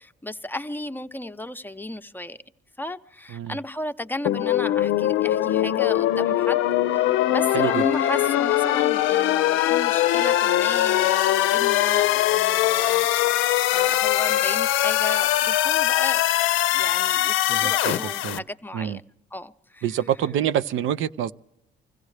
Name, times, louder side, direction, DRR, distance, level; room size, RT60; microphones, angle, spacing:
voice 1, 0.0-2.4 2.8-6.6 7.3-13.1 13.7-16.2 16.7-19.0 19.3-19.9, left 1 dB, 10° left, 0.7 m, -34 dB
sound 1, 4.2-18.4, left 13 dB, 90° left, 0.5 m, -21 dB
voice 2, 17.5-18.4 18.7-19.0 19.8-21.3, right 10 dB, 80° right, 0.5 m, -26 dB
25.5 x 16.0 x 3.3 m
cardioid pair, 90°, 20 cm